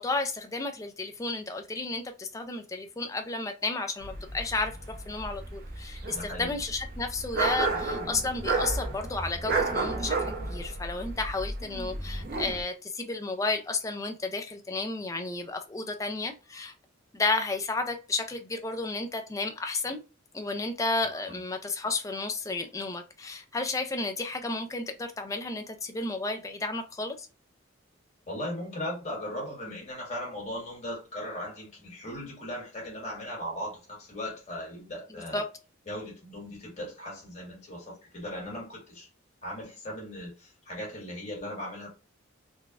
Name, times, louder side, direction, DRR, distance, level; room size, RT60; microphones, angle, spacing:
voice 1, 0.0-4.8 5.1-16.7 17.1-20.0 20.3-27.3 35.3-35.5, left 3 dB, 15° left, 0.4 m, -32 dB
sound 1, 4.0-12.6, right 3 dB, 45° right, 0.6 m, -32 dB
voice 2, 6.1-6.5 21.2-21.4 28.3-35.4 35.9-39.1 39.4-41.9, left 1 dB, 35° left, 1.7 m, -38 dB
4.0 x 2.2 x 2.4 m
head